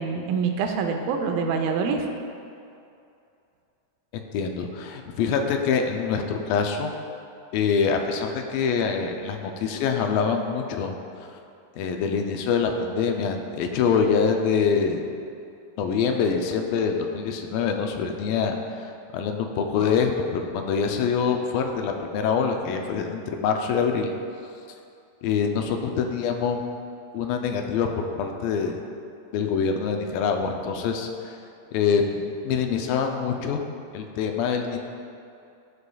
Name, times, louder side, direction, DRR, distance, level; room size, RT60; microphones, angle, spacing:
voice 1, 0.0-2.0, right 5 dB, 85° right, 4 dB, 2.4 m, -25 dB
voice 2, 4.3-6.9 7.5-10.9 11.8-15.0 15.8-24.1 25.2-26.6 27.1-28.8 29.3-31.4 31.7-33.6 33.9-34.8, left 6 dB, 80° left, 4 dB, 2.2 m, -25 dB
13.0 x 4.8 x 2.3 m, 2.6 s
omnidirectional pair, 4.2 m